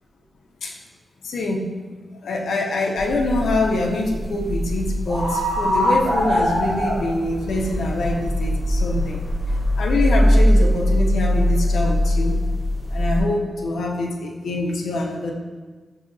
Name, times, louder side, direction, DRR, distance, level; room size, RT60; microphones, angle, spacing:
voice 1, 1.2-1.7 2.2-9.2 9.8-12.4 12.9-15.3, left 2 dB, 90° left, 0 dB, 0.4 m, -24 dB
sound 1, 3.0-13.2, equal, 45° right, 0.9 m, -21 dB
6.3 x 2.7 x 2.5 m, 1.4 s
wide cardioid pair, 115°, 0 cm